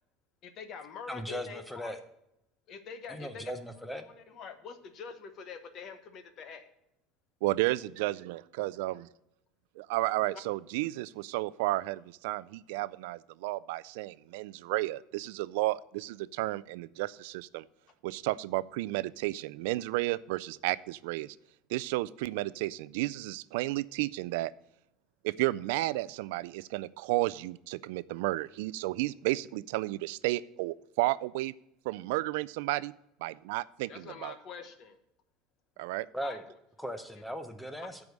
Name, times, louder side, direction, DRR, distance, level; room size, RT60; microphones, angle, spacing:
voice 1, 0.4-2.0 2.7-3.5 4.1-6.7 33.9-35.0 36.2-36.4, left 6 dB, 35° left, 9 dB, 0.9 m, -45 dB
voice 2, 1.1-2.0 3.1-4.1 36.1-36.4 36.8-38.0, equal, ahead, 8 dB, 0.7 m, -38 dB
voice 3, 7.4-8.9 9.8-17.6 18.0-21.4 21.7-24.5 25.2-31.5 31.9-32.9 33.2-34.4 35.8-36.1, right 18 dB, 70° right, 19 dB, 0.3 m, -32 dB
13.0 x 4.8 x 5.3 m, 0.84 s
cardioid pair, 175°, 0 cm